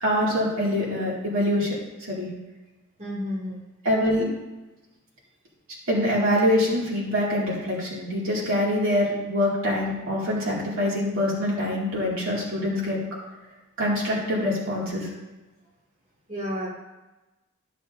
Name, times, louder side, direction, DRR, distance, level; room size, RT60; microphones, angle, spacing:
voice 1, 0.0-1.8 2.1-2.3 3.8-4.3 5.9-13.0 13.8-15.1, left 1 dB, 70° right, -5 dB, 2.5 m, -24 dB
voice 2, 3.0-3.6 16.3-16.7, equal, 35° right, -6 dB, 2.1 m, -31 dB
13.0 x 6.7 x 2.7 m, 1.1 s
head